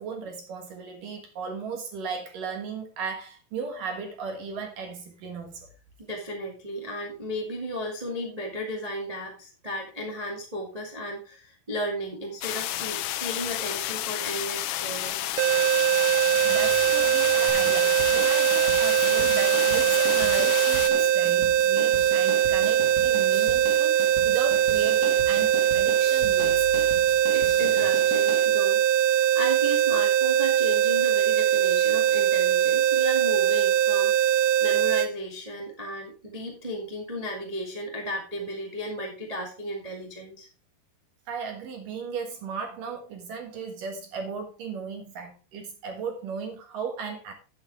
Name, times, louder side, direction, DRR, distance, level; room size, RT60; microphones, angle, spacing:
voice 1, 0.0-5.7 16.4-26.7 27.0-27.2 41.3-47.3, right 5 dB, 60° right, 2.8 m, -36 dB
voice 2, 6.0-15.2 27.3-40.5, equal, 25° right, 0.8 m, -34 dB
sound 1, 12.4-20.9, left 14 dB, 80° left, 2.7 m, -31 dB
sound 2, 15.4-35.1, right 11 dB, 90° right, 3.2 m, -22 dB
sound 3, 17.5-28.4, left 2 dB, 35° left, 1.9 m, -39 dB
11.0 x 8.6 x 3.4 m
omnidirectional pair, 5.0 m